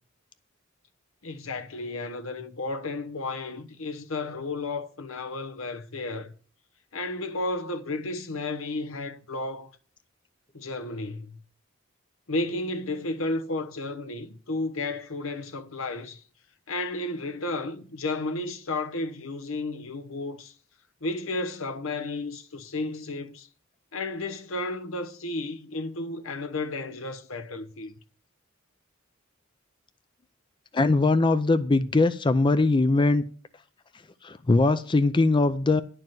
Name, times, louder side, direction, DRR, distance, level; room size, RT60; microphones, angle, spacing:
voice 1, 1.2-6.3 6.9-9.8 10.5-11.4 12.3-16.2 16.7-20.5 21.0-23.5 23.9-27.9, left 2 dB, 75° left, 1.0 m, -33 dB
voice 2, 30.7-33.2 34.2-35.8, left 3 dB, 25° left, 0.4 m, -21 dB
10.5 x 4.7 x 7.7 m
head